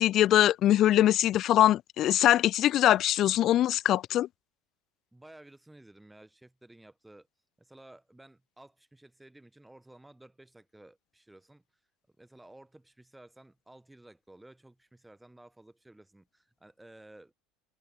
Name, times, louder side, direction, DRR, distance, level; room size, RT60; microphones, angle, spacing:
voice 1, 0.0-4.3, left 13 dB, 40° left, 0.4 m, -22 dB
voice 2, 5.1-7.3 7.6-11.6 12.2-17.3, right 1 dB, 5° right, 7.6 m, -54 dB
cardioid pair, 150°, 0 cm